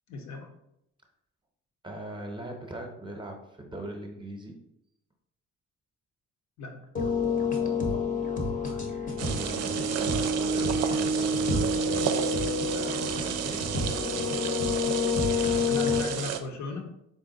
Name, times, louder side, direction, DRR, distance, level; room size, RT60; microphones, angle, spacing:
voice 1, 0.1-0.5 6.6-6.9 15.6-16.9, left 3 dB, 70° left, 3 dB, 0.8 m, -37 dB
voice 2, 1.8-4.6 9.3-12.2 12.7-13.8, right 1 dB, 15° right, 2 dB, 0.7 m, -40 dB
sound 1, 7.0-16.0, left 3 dB, 25° left, 0.7 m, -28 dB
sound 2, 9.2-16.4, right 9 dB, 60° right, 0.4 m, -32 dB
3.9 x 2.2 x 3.8 m, 0.80 s
cardioid pair, 90°, 30 cm